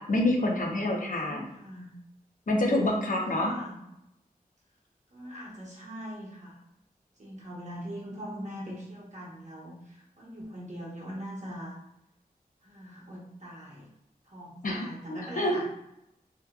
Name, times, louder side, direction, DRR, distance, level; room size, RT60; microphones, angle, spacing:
voice 1, 0.0-1.5 2.5-3.5 14.6-15.6, left 1 dB, 60° left, 0 dB, 0.5 m, -27 dB
voice 2, 0.8-1.9 2.9-3.7 5.1-6.6 7.2-11.8 12.6-13.9 14.3-15.7, equal, 50° right, -5 dB, 0.9 m, -42 dB
2.7 x 2.2 x 2.3 m, 0.84 s
wide cardioid pair, 70°, 16 cm